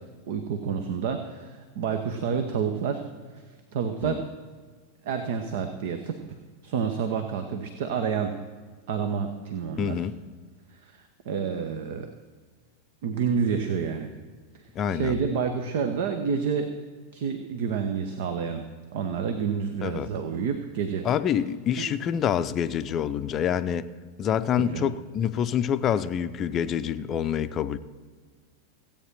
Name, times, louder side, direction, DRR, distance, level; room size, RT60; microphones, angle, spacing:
voice 1, 0.3-3.0 3.3-3.4 3.7-4.3 5.0-6.2 6.6-8.4 8.9-10.0 10.7-12.1 13.0-14.1 14.9-16.7 17.1-18.7 18.9-21.1 21.7-21.9 24.5-24.9, right 6 dB, 55° right, 1.0 m, -29 dB
voice 2, 9.8-10.2 14.7-15.2 19.8-20.1 21.0-23.9 24.2-27.8, left 9 dB, 30° left, 0.6 m, -27 dB
16.0 x 8.8 x 5.7 m
figure-of-eight pair, 90°, 0 cm